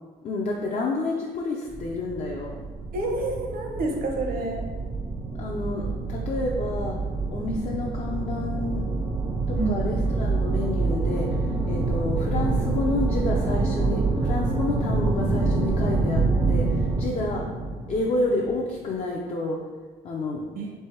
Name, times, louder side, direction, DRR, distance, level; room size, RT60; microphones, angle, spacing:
voice 1, 0.2-2.6 5.3-7.0 7.3-8.9 9.5-17.5 17.9-19.7 20.0-20.4, left 2 dB, 40° left, -2 dB, 0.6 m, -29 dB
sound 1, 1.7-18.7, right 3 dB, 25° right, 0.5 m, -26 dB
voice 2, 2.9-4.7 9.5-10.2 20.6-20.7, right 2 dB, 60° right, 1 dB, 0.9 m, -29 dB
3.5 x 3.3 x 4.4 m, 1.4 s
cardioid pair, 110°, 17 cm